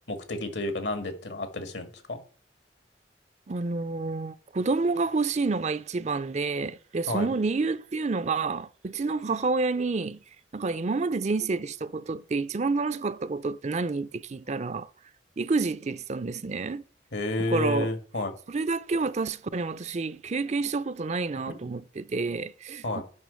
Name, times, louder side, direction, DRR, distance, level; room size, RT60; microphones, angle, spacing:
voice 1, 0.1-2.2 7.1-7.3 17.1-18.3 21.6-21.7 22.8-23.0, left 2 dB, 75° left, 2.0 m, -31 dB
voice 2, 3.5-10.2 10.5-14.9 15.4-16.8 17.5-17.9 18.5-23.0, right 3 dB, 40° right, 0.5 m, -29 dB
9.3 x 5.7 x 8.3 m
head